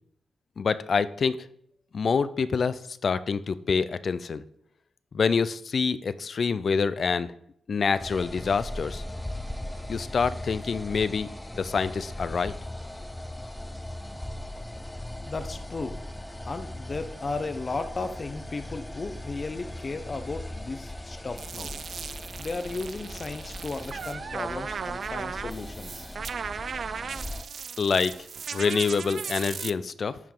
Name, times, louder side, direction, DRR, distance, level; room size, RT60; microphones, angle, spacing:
voice 1, 0.6-1.4 1.9-4.4 5.1-7.3 7.7-9.0 9.9-11.3 11.5-12.5 27.8-28.1 28.5-30.2, left 5 dB, 55° left, 15 dB, 0.4 m, -26 dB
sound 1, 8.0-27.4, left 1 dB, 10° left, 0.6 m, -39 dB
voice 2, 15.3-16.0 16.4-21.8 22.4-26.1, left 3 dB, 40° left, 9 dB, 0.8 m, -35 dB
sound 2, 21.4-29.7, right 6 dB, 65° right, 0.3 m, -37 dB
10.5 x 4.6 x 3.8 m, 0.70 s
cardioid pair, 65°, 0 cm